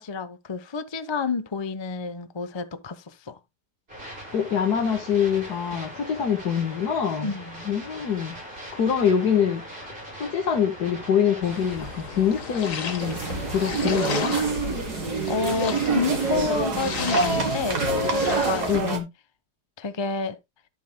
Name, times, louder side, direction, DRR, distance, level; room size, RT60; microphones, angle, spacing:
voice 1, 0.0-3.4 7.2-7.6 15.2-19.0 19.8-20.4, left 4 dB, 30° left, 0.5 m, -29 dB
sound 1, 3.9-13.9, equal, 35° right, 6.8 m, -41 dB
voice 2, 4.3-7.3 7.7-9.6 10.2-13.2 13.5-14.4 18.7-19.1, left 8 dB, 70° left, 1.9 m, -24 dB
sound 2, 11.4-18.8, left 5 dB, 55° left, 1.7 m, -34 dB
sound 3, 13.0-19.0, right 3 dB, 70° right, 2.3 m, -26 dB
11.5 x 8.0 x 2.2 m
omnidirectional pair, 1.8 m